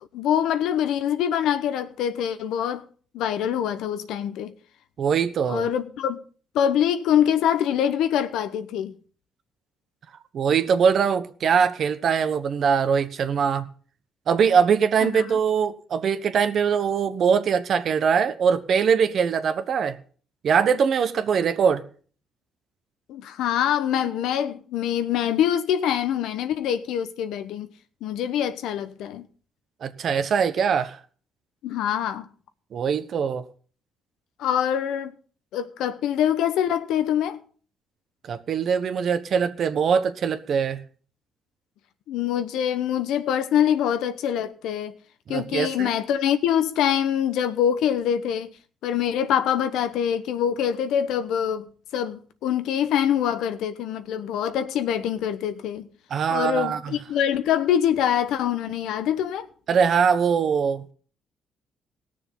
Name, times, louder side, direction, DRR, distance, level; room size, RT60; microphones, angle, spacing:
voice 1, 0.1-2.9 3.1-4.5 5.5-6.2 6.5-8.9 15.0-15.2 23.1-27.7 28.0-29.3 31.6-32.3 34.4-35.2 35.5-37.4 42.1-44.9 45.3-48.5 48.8-55.9 56.3-59.5, left 9 dB, 85° left, 1.0 m, -24 dB
voice 2, 5.0-5.7 10.3-13.7 14.3-20.0 20.4-21.8 29.8-31.0 32.7-33.4 38.2-40.8 45.3-45.9 56.1-57.0 59.7-60.9, right 6 dB, 60° right, 1.1 m, -22 dB
18.0 x 6.8 x 5.5 m
cardioid pair, 90°, 0 cm